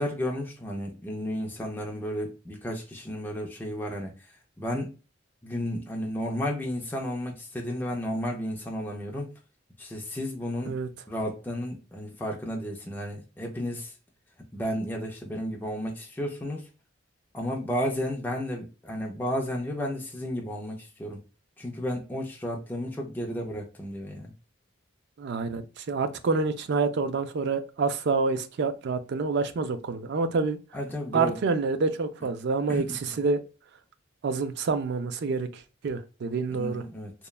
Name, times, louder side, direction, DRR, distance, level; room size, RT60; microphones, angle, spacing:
voice 1, 0.0-4.1 4.6-4.9 5.4-9.3 9.8-10.7 11.1-13.9 14.5-16.7 17.3-21.2 21.6-24.3 30.7-31.4 32.7-33.0 36.5-37.1, equal, 10° left, 0.4 m, -32 dB
voice 2, 25.2-30.6 31.1-33.4 34.2-36.8, right 4 dB, 55° right, 0.3 m, -27 dB
3.0 x 2.2 x 2.3 m
head